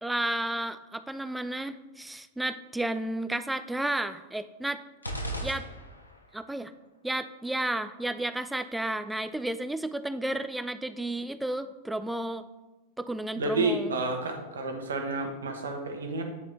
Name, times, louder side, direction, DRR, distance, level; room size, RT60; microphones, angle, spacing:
voice 1, 0.0-4.8 5.4-5.7 6.3-6.7 7.0-12.4 13.0-13.9, right 1 dB, 5° right, 12 dB, 0.3 m, -32 dB
sound 1, 5.0-6.3, right 1 dB, 85° left, 0.6 m, -36 dB
voice 2, 13.3-16.2, right 3 dB, 70° right, 4 dB, 0.9 m, -30 dB
9.5 x 3.7 x 3.3 m, 1.1 s
figure-of-eight pair, 90°, 0 cm